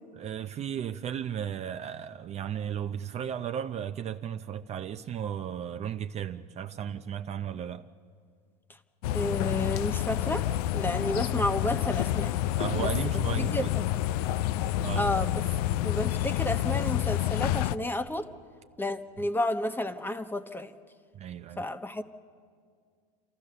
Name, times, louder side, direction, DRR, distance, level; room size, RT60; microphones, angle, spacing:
voice 1, 0.2-7.9 12.6-13.7 14.8-15.1 21.1-21.6, right 9 dB, 30° right, 0.6 m, -35 dB
sound 1, 9.0-17.8, left 13 dB, 70° left, 0.5 m, -28 dB
voice 2, 9.1-10.5 10.7-12.4 12.8-13.9 14.9-15.4 15.8-18.3 18.8-20.7 21.6-22.0, left 1 dB, 10° left, 1.0 m, -31 dB
29.0 x 13.5 x 6.8 m
hypercardioid pair, 100°, 20 cm